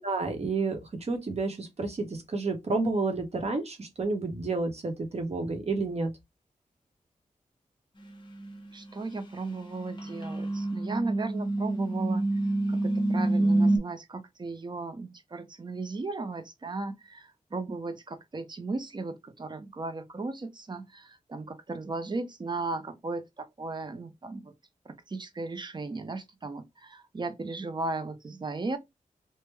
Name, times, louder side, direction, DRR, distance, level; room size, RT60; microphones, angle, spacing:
voice 1, 0.0-6.1, right 3 dB, 50° right, 0.9 m, -30 dB
sound 1, 8.4-8.6 9.5-13.8, right 2 dB, 35° left, 0.7 m, -27 dB
voice 2, 8.7-12.3 12.7-24.5 24.8-28.8, right 3 dB, 35° right, 0.5 m, -36 dB
3.3 x 2.1 x 3.2 m
wide cardioid pair, 125°, 14 cm